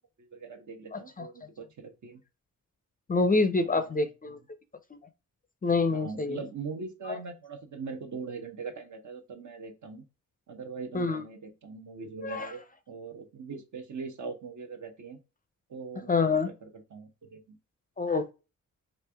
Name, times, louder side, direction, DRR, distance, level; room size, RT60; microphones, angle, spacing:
voice 1, 0.2-2.2 3.6-4.1 5.9-10.0 10.5-12.6 12.9-15.2 15.7-17.6, right 4 dB, 60° right, 0.8 m, -41 dB
voice 2, 0.9-1.3 3.1-4.4 4.9-5.0 5.6-6.4 7.1-7.2 10.9-11.2 12.2-12.5 16.1-16.5 18.0-18.3, left 3 dB, 25° left, 0.4 m, -26 dB
3.3 x 2.5 x 3.2 m
cardioid pair, 70°, 34 cm